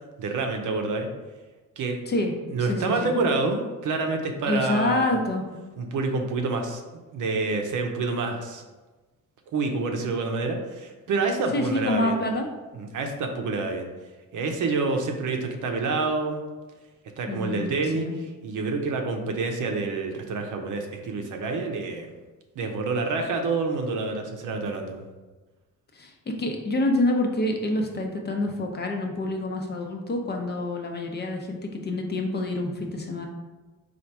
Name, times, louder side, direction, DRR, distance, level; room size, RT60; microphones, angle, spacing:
voice 1, 0.2-1.1 1.8-2.0 2.5-5.2 5.8-8.6 9.5-12.2 12.7-13.9 14.3-16.4 17.2-22.1 22.6-25.0, right 3 dB, 70° right, 3 dB, 0.7 m, -28 dB
voice 2, 2.7-3.1 4.5-5.5 11.5-12.5 17.3-18.2 25.9-26.1 26.4-33.3, left 1 dB, 30° left, 2 dB, 0.5 m, -27 dB
4.2 x 2.5 x 4.6 m, 1.2 s
cardioid pair, 135°, 32 cm